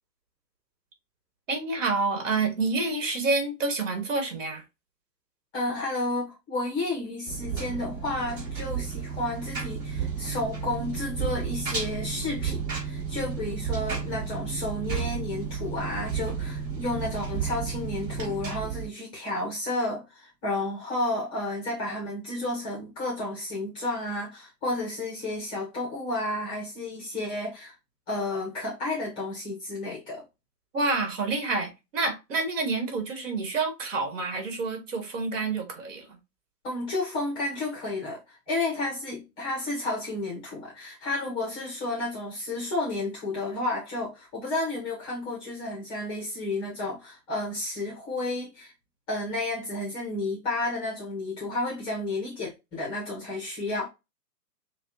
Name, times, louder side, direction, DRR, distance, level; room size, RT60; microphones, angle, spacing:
voice 1, 1.5-4.6 30.7-36.2, right 3 dB, 50° right, 2.0 m, -28 dB
voice 2, 5.5-27.7 28.1-30.2 36.6-48.7 49.1-53.9, left 2 dB, 10° left, 0.8 m, -32 dB
Engine, 7.3-18.9, right 6 dB, 30° right, 2.8 m, -32 dB
6.6 x 2.4 x 2.8 m
hypercardioid pair, 140°, 50 cm